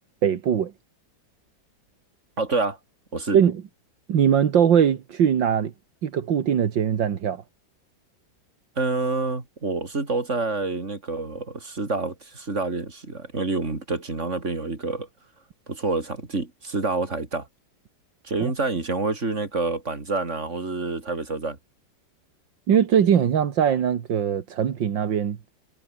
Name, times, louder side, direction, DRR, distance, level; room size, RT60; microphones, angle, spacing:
voice 1, 0.2-0.7 3.3-3.6 4.1-5.7 6.0-7.4 18.4-18.5 22.7-25.4, right 8 dB, 75° right, 2.2 m, -21 dB
voice 2, 2.4-2.8 3.1-3.4 8.8-15.1 15.7-17.5 18.2-21.6, right 3 dB, 35° right, 4.1 m, -27 dB
omnidirectional pair, 2.1 m